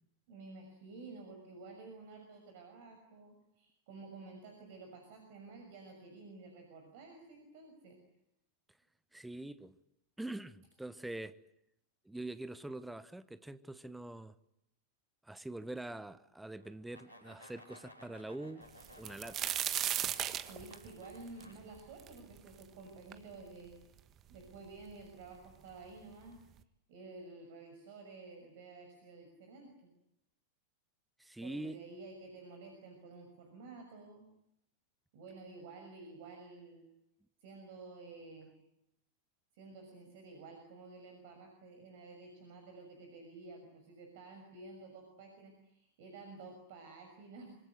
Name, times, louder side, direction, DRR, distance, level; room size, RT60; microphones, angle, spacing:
voice 1, 0.3-8.0 20.5-23.8 24.3-26.4 26.9-29.7 31.4-34.2 35.1-36.8 37.4-38.5 39.5-47.5, right 3 dB, 50° right, 6.2 m, -52 dB
voice 2, 9.1-9.8 10.2-11.4 12.0-14.3 15.2-18.7 19.0-19.6 31.2-31.8, right 2 dB, 5° right, 1.1 m, -44 dB
sound 1, 16.6-21.5, left 1 dB, 85° right, 7.1 m, -57 dB
sound 2, 18.8-22.6 23.1-23.2 24.0-24.1 24.3-25.0 25.9-26.0 26.4-26.6, right 11 dB, 30° right, 1.4 m, -36 dB
26.0 x 24.5 x 8.1 m
figure-of-eight pair, 90°, 0 cm